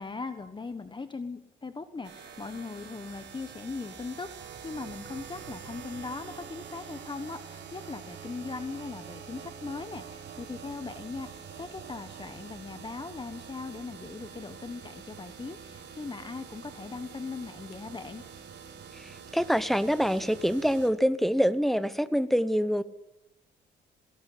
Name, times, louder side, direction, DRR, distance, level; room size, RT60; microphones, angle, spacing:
voice 1, 0.0-4.3 4.6-18.2, left 4 dB, 25° left, 9 dB, 1.3 m, -39 dB
sound 1, 2.0-20.9, right 6 dB, 60° right, 4.4 m, -46 dB
voice 2, 18.9-22.8, equal, ahead, 13 dB, 1.0 m, -26 dB
18.0 x 17.5 x 8.7 m, 0.93 s
cardioid pair, 90°, 20 cm